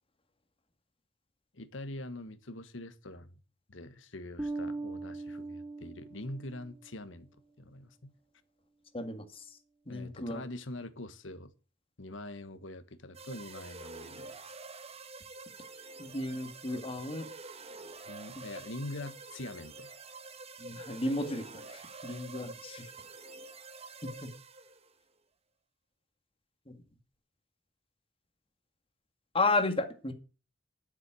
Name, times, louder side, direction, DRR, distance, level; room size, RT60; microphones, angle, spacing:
voice 1, 1.5-3.3 3.7-7.3 7.6-8.1 9.9-11.5 12.0-14.5 18.1-19.9, left 1 dB, 90° left, 1.3 m, -44 dB
Bass guitar, 4.4-6.8, right 2 dB, 10° right, 0.6 m, -39 dB
voice 2, 8.9-9.2 9.9-10.4 16.0-17.3 18.3-18.5 20.6-22.9 24.0-24.3 26.7-26.8 29.3-30.1, left 2 dB, 30° left, 1.9 m, -33 dB
sound 1, 13.1-24.9, right 3 dB, 35° right, 1.1 m, -47 dB
9.8 x 7.6 x 8.8 m
head